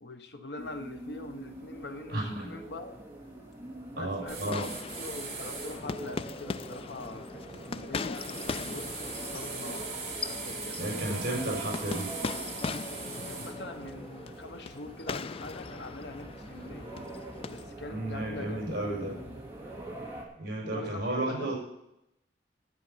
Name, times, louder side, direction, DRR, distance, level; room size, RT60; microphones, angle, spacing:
voice 1, 0.0-3.0 3.9-4.7 5.0-9.9 10.2-11.2 13.2-16.9 17.5-19.4 20.7-21.5, left 2 dB, 70° left, 7 dB, 1.2 m, -43 dB
sound 1, 0.6-20.2, right 1 dB, 15° right, 2.4 m, -44 dB
voice 2, 2.1-2.5 3.9-4.6 10.8-12.1 17.9-19.1 20.4-21.5, right 1 dB, 60° right, -2 dB, 5.7 m, -33 dB
sound 2, 4.3-5.8 8.1-13.5, right 4 dB, 35° right, 2.7 m, -40 dB
sound 3, 4.5-17.7, left 4 dB, 30° left, 0.3 m, -40 dB
12.0 x 9.4 x 5.8 m, 0.84 s
head